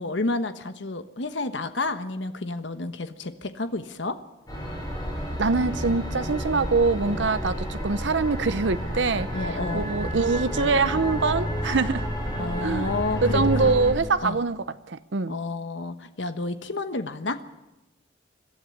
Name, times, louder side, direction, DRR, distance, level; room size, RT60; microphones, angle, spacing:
voice 1, 0.0-4.2 9.3-9.9 12.4-13.7 14.2-14.4 15.3-17.4, left 2 dB, 85° left, 10 dB, 1.3 m, -30 dB
sound 1, 4.5-13.9, equal, 20° left, 5.6 m, -30 dB
voice 2, 5.4-12.1 12.6-12.9 13.2-15.4, right 4 dB, 85° right, 13 dB, 0.8 m, -24 dB
22.0 x 13.0 x 9.8 m, 1.0 s
head